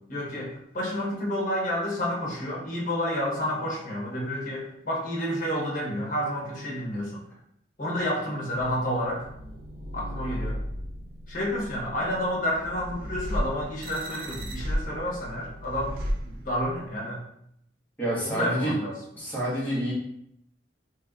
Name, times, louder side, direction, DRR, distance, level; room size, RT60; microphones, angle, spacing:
voice 1, 0.1-7.2 7.8-9.3 9.9-10.6 11.3-15.9 16.2-17.2 18.2-19.0, equal, 45° left, -4 dB, 1.1 m, -30 dB
sound 1, 8.5-16.9, equal, 55° right, 0.5 m, -35 dB
voice 2, 18.0-18.7 19.2-19.9, right 1 dB, 10° left, -8 dB, 1.4 m, -28 dB
3.4 x 3.3 x 2.4 m, 0.75 s
head